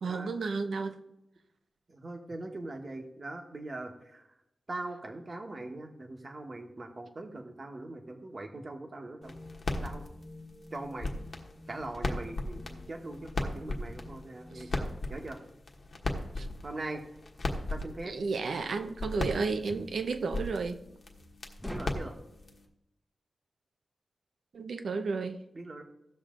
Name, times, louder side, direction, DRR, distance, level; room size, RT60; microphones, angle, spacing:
voice 1, 0.0-1.0 14.5-14.6 16.4-16.5 18.1-20.8 24.5-25.4, right 4 dB, 80° right, 0.8 m, -32 dB
voice 2, 1.9-4.3 4.7-9.3 9.8-10.0 10.7-11.1 11.7-15.4 16.6-17.0 17.7-18.1 21.7-22.1 25.5-25.8, right 2 dB, 40° right, 1.4 m, -41 dB
sound 1, 9.1-15.1, left 2 dB, 20° left, 1.2 m, -51 dB
sound 2, 9.2-22.6, left 2 dB, 55° left, 1.4 m, -38 dB
sound 3, 19.7-20.0 21.6-22.1, equal, ahead, 0.9 m, -42 dB
16.0 x 6.5 x 3.8 m
wide cardioid pair, 115°, 0 cm